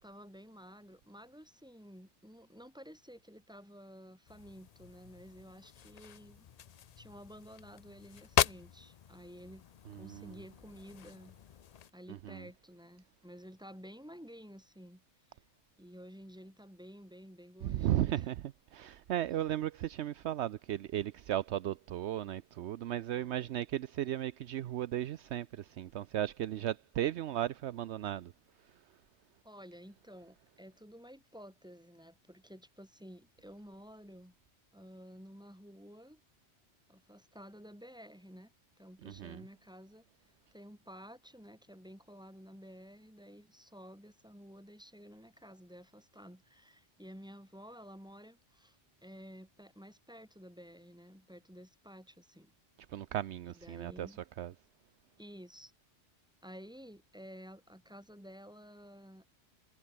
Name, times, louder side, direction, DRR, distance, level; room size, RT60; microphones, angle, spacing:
voice 1, 0.0-6.5 7.0-9.7 9.9-11.3 11.9-15.0 15.8-18.3 29.4-34.3 34.7-36.2 36.9-40.0 40.5-52.5 53.5-54.2 55.2-55.7 56.4-59.2, equal, 5° right, 6.2 m, -52 dB
sound 1, 4.3-11.9, left 9 dB, 60° left, 0.4 m, -39 dB
voice 2, 17.6-18.3 18.7-28.3 39.0-39.4 52.9-54.1 54.4-54.5, right 12 dB, 70° right, 0.9 m, -35 dB
omnidirectional pair, 1.2 m